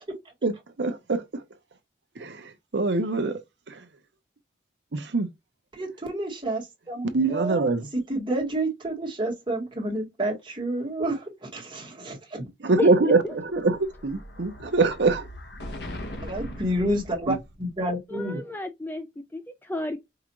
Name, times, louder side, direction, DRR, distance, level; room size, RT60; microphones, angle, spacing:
voice 1, 0.8-1.4 2.2-3.4 3.7-3.8 4.9-5.3 7.1-7.9 12.6-15.3 17.3-17.4, right 3 dB, 65° right, 0.7 m, -24 dB
voice 2, 5.7-12.5 16.2-18.4, right 1 dB, 25° right, 1.5 m, -30 dB
voice 3, 12.8-13.1 18.1-20.0, left 2 dB, 10° left, 0.4 m, -32 dB
Explosion, 13.2-17.8, left 1 dB, 60° left, 1.0 m, -40 dB
4.9 x 2.4 x 3.0 m
head